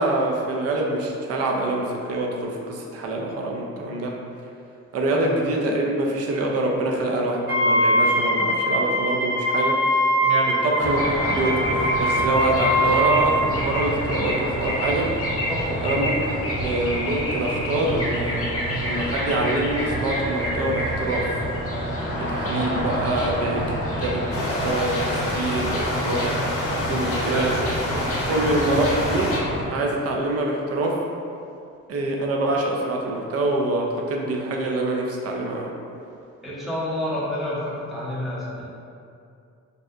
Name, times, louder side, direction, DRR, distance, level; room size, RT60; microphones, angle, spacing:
voice 1, 0.0-4.1 4.9-9.8 10.6-15.1 15.8-18.4 18.8-21.3 22.1-23.6 24.0-26.3 26.9-27.5 27.9-29.3 29.7-31.0 31.9-35.7, right 2 dB, 55° right, -1 dB, 0.5 m, -25 dB
Wind instrument woodwind instrument, 7.5-13.4, equal, 90° right, 1.2 m, -22 dB
voice 2, 10.2-10.6 15.5-16.0 27.3-27.8 28.2-29.0 36.4-38.7, left 1 dB, ahead, -9 dB, 0.6 m, -30 dB
sound 1, 10.8-29.6, equal, 50° left, 0.7 m, -27 dB
sound 2, 24.3-29.4, left 1 dB, 90° left, 0.6 m, -28 dB
2.7 x 2.1 x 2.3 m, 2.5 s
cardioid pair, 90°, 30 cm